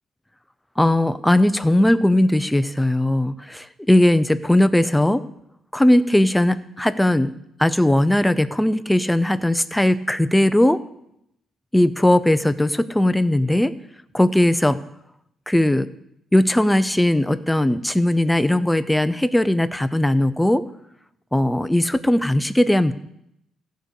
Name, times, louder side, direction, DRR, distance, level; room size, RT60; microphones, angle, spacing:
voice 1, 0.8-5.2 5.7-7.3 7.6-10.8 11.7-13.7 14.1-14.8 15.5-15.9 16.3-20.6 21.3-22.9, left 1 dB, 5° left, 12 dB, 0.6 m, -18 dB
15.5 x 5.2 x 6.5 m, 0.79 s
cardioid pair, 90°, 0 cm